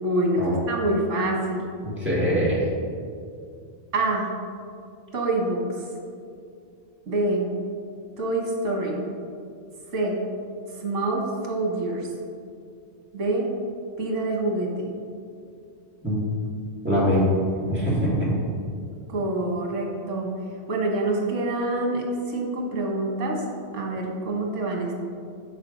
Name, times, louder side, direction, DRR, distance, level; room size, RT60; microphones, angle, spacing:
voice 1, 0.0-1.6 3.9-4.3 5.1-5.6 7.1-7.5 8.2-9.0 9.9-10.2 10.8-12.1 13.1-13.5 14.0-14.9 19.1-20.3 20.7-23.4 23.7-24.9, right 2 dB, 85° right, 0 dB, 1.4 m, -26 dB
voice 2, 1.8-2.7 16.0-16.2 16.8-17.3 17.7-18.3, equal, 10° right, -7 dB, 1.5 m, -23 dB
5.7 x 4.3 x 5.0 m, 2.4 s
omnidirectional pair, 1.2 m